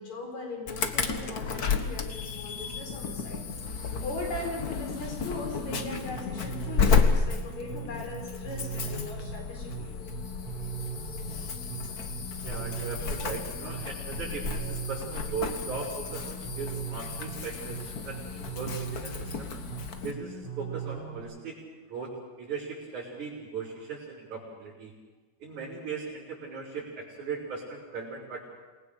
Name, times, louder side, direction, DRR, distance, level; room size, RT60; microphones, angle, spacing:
voice 1, 0.0-3.4 4.0-9.9, left 2 dB, 70° left, 1 dB, 5.8 m, -39 dB
Insect / Alarm, 0.7-20.1, left 5 dB, 45° left, 1.4 m, -32 dB
sound 1, 5.2-21.2, right 6 dB, 15° right, 7.1 m, -40 dB
voice 2, 12.4-19.5 20.0-21.6 21.9-22.1 22.4-24.9 25.4-28.5, right 5 dB, 85° right, -9 dB, 7.2 m, -38 dB
28.0 x 20.5 x 6.8 m, 1.3 s
omnidirectional pair, 3.3 m